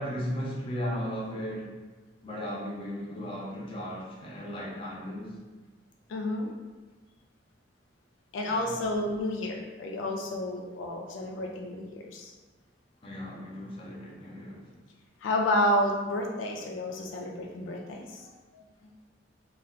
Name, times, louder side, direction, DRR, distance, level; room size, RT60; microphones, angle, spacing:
voice 1, 0.0-1.7 2.2-5.3 8.5-8.8 13.0-14.7, equal, 30° left, -4 dB, 0.6 m, -36 dB
voice 2, 6.1-6.5 8.3-12.3 15.2-18.3, left 1 dB, 80° left, 1 dB, 0.3 m, -30 dB
2.3 x 2.2 x 3.6 m, 1.3 s
head